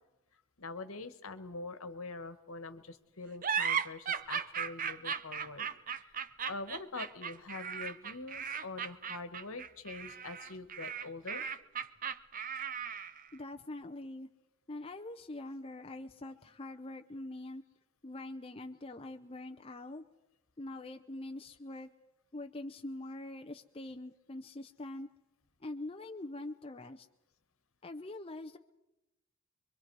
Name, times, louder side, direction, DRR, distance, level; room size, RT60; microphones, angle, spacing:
voice 1, 0.6-6.2 6.5-11.4, left 3 dB, 70° left, 10 dB, 1.5 m, -44 dB
sound 1, 3.4-13.3, right 7 dB, 40° right, 0.7 m, -37 dB
voice 2, 13.3-14.3 14.7-17.6 18.0-20.0 20.6-21.9 22.3-25.1 25.6-27.1 27.8-28.6, left 2 dB, 25° left, 5 dB, 0.6 m, -44 dB
25.0 x 23.5 x 4.8 m, 0.96 s
head